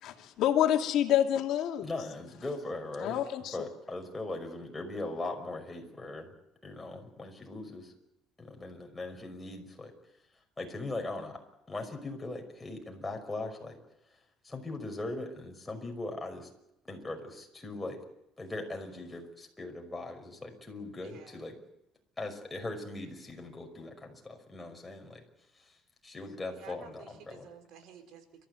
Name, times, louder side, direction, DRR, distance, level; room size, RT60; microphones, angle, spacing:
voice 1, 0.0-1.9 3.0-3.5, left 11 dB, 65° left, 4 dB, 2.4 m, -27 dB
voice 2, 1.8-3.2 3.5-6.3 6.6-7.9 8.4-9.9 10.6-11.4 11.7-13.8 14.4-16.5 16.9-18.0 18.4-21.6 22.2-25.2 25.6-25.7 26.0-27.5, left 2 dB, 15° left, 2 dB, 5.6 m, -40 dB
voice 3, 21.0-21.4 26.5-28.5, right 7 dB, 70° right, 8 dB, 4.4 m, -52 dB
30.0 x 14.0 x 8.2 m, 0.87 s
cardioid pair, 115°, 0 cm